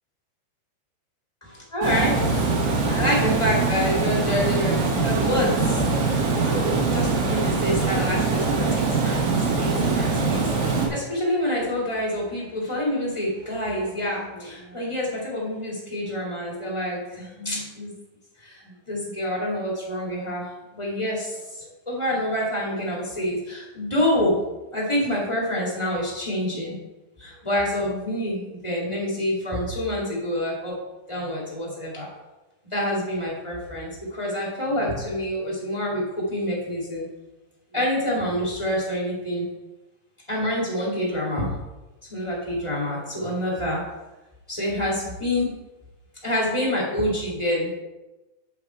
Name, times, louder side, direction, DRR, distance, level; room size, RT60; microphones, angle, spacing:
voice 1, 1.7-6.2 6.5-17.9 18.4-24.4 24.7-26.8 27.2-30.7 31.1-32.1 32.7-37.0 37.7-39.5 40.3-41.5 42.1-43.8 44.5-45.5 46.2-47.8, left 1 dB, 15° left, -6 dB, 0.9 m, -27 dB
Water, 1.8-10.9, right 4 dB, 80° right, 4.0 m, -23 dB
8.0 x 7.1 x 4.6 m, 1.1 s
omnidirectional pair, 5.3 m